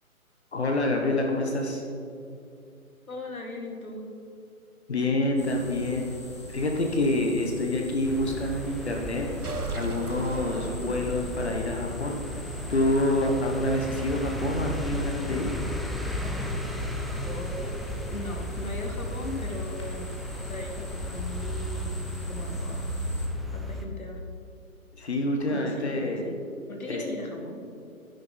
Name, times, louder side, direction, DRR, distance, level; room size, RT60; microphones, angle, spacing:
voice 1, 0.5-1.8 4.9-6.2 6.5-9.3 9.8-12.2 12.7-15.5 25.0-26.3 26.9-27.0, left 1 dB, 50° left, 1 dB, 1.4 m, -27 dB
voice 2, 3.1-4.0 17.2-20.1 20.4-21.9 22.3-22.8 23.5-24.2 25.5-26.4 26.7-27.6, left 2 dB, 70° left, 2 dB, 2.0 m, -38 dB
sound 1, 5.4-23.3, left 1 dB, 20° left, 0.7 m, -39 dB
sound 2, 8.0-23.9, equal, ahead, 0.3 m, -35 dB
sound 3, 9.4-11.4, right 2 dB, 90° right, 1.2 m, -36 dB
11.0 x 9.5 x 4.1 m, 2.6 s
figure-of-eight pair, 150°, 43 cm